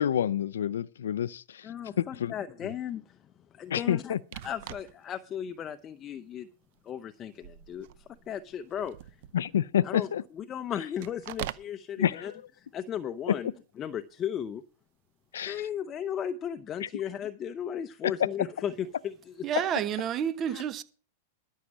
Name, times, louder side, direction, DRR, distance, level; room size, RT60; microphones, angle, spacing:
voice 1, 0.0-2.3 2.6-2.7 3.7-4.2 9.3-10.2 12.0-12.4 13.3-13.5 15.3-15.7 16.8-16.9 18.0-18.3 19.5-19.6, left 9 dB, 85° left, 0.5 m, -28 dB
voice 2, 1.6-3.2 3.5-4.1 4.4-6.5 6.8-8.9 9.8-10.1 10.3-12.3 12.6-13.5 13.8-14.6 15.4-19.3 20.5-20.6, left 9 dB, 30° left, 0.7 m, -36 dB
sound 1, 4.2-5.1 5.7-5.8 6.6-6.9 7.3-9.5 11.0-11.7 15.4-15.7, right 14 dB, 60° right, 0.7 m, -43 dB
voice 3, 19.4-20.8, right 9 dB, 30° right, 1.1 m, -29 dB
13.0 x 6.6 x 7.4 m
hypercardioid pair, 130°, 0 cm